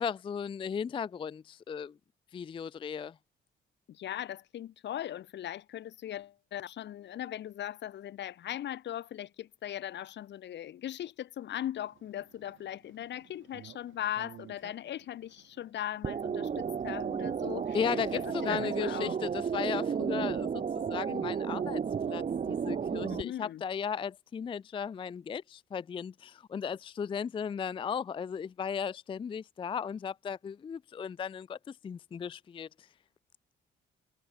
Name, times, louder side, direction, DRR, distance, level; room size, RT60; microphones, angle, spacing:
voice 1, 0.0-1.9 2.3-3.1 17.7-21.8 22.1-32.9, left 7 dB, 25° left, 0.3 m, -36 dB
voice 2, 3.9-17.8 18.1-19.2 23.1-23.6, left 11 dB, 60° left, 0.9 m, -39 dB
sound 1, 11.9-19.8, right 12 dB, 75° right, 4.2 m, -58 dB
sound 2, 16.0-23.2, right 7 dB, 35° right, 0.9 m, -33 dB
cardioid pair, 90°, 20 cm